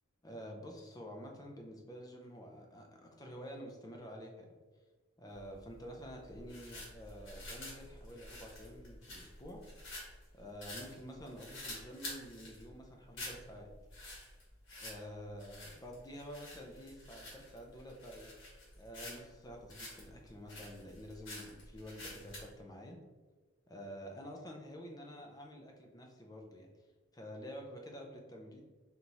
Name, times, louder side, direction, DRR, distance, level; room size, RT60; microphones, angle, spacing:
voice 1, 0.2-4.5 5.2-9.6 10.3-13.7 14.8-18.3 18.8-23.0 23.7-26.7 27.1-28.6, equal, 20° left, 1 dB, 0.5 m, -49 dB
sound 1, 5.3-22.5, left 1 dB, 65° left, 1.5 m, -49 dB
4.0 x 3.4 x 2.9 m, 1.3 s
head